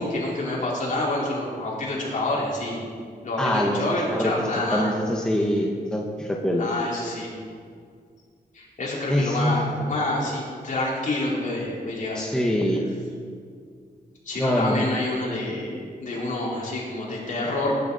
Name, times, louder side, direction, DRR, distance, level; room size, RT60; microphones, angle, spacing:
voice 1, 0.0-2.8 3.2-4.9 6.6-7.3 8.5-12.3 14.3-17.7, left 2 dB, 55° left, -5 dB, 3.9 m, -28 dB
voice 2, 3.4-3.8 4.1-6.7 9.1-9.6 12.1-12.8 14.4-14.9, equal, 5° left, -1 dB, 1.2 m, -24 dB
18.5 x 10.5 x 4.1 m, 2.1 s
wide cardioid pair, 145°, 16 cm